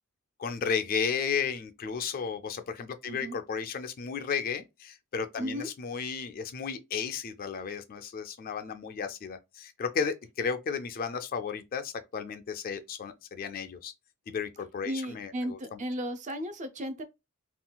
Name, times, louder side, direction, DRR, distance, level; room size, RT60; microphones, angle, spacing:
voice 1, 0.4-13.9 14.3-15.8, left 6 dB, 40° left, 0.3 m, -34 dB
voice 2, 3.1-3.4 5.4-5.7 14.8-17.0, equal, 35° right, 0.5 m, -35 dB
3.7 x 2.3 x 2.2 m
head